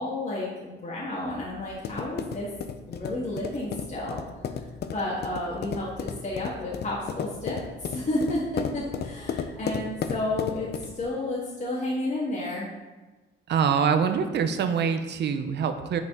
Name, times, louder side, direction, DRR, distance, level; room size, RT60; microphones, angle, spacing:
voice 1, 0.0-2.5 2.9-4.2 4.9-12.7, left 1 dB, 40° left, -6 dB, 1.5 m, -31 dB
sound 1, 1.3-11.1, left 7 dB, 55° left, 0.5 m, -34 dB
voice 2, 13.5-16.0, right 7 dB, 60° right, 8 dB, 0.7 m, -24 dB
8.1 x 4.0 x 3.6 m, 1.2 s
cardioid pair, 90°, 20 cm